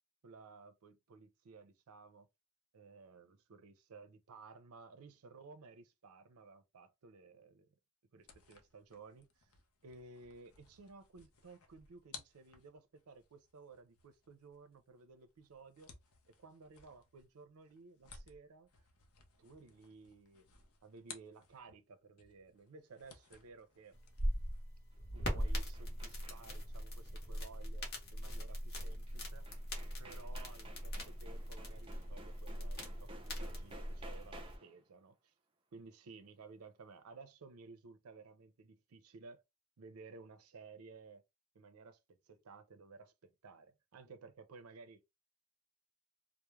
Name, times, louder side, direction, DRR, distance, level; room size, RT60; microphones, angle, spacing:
voice 1, 0.2-2.3 2.7-7.7 8.1-9.5 9.8-15.9 16.3-18.7 19.4-20.5 20.8-24.0 25.1-29.5 30.0-35.3 35.7-39.4 39.8-41.2 41.5-45.0, right 4 dB, 85° right, 0.5 m, -56 dB
sound 1, 8.2-21.9 22.2-24.6, left 5 dB, 80° left, 0.6 m, -59 dB
sound 2, 23.9-34.6, equal, 45° left, 0.8 m, -41 dB
sound 3, 24.9-26.7 29.1-29.2 29.5-34.8, right 2 dB, 25° right, 0.4 m, -56 dB
2.3 x 2.0 x 3.0 m
head